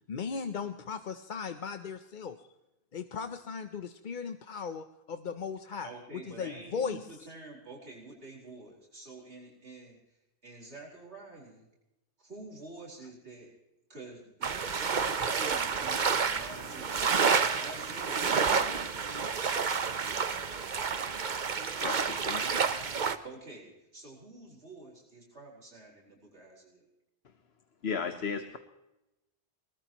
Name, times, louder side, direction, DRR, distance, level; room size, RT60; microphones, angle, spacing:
voice 1, 0.1-2.4 2.9-7.0, left 6 dB, 50° left, 9 dB, 0.8 m, -37 dB
voice 2, 5.8-11.7 12.2-13.5 13.9-17.0 17.6-19.1 23.2-26.9, right 2 dB, 80° right, -3 dB, 4.8 m, -48 dB
sound 1, 14.4-23.2, right 5 dB, 45° right, 1.0 m, -29 dB
voice 3, 21.8-22.4 27.8-28.6, left 5 dB, 70° left, 8 dB, 1.2 m, -34 dB
22.0 x 19.5 x 3.0 m, 0.93 s
omnidirectional pair, 1.1 m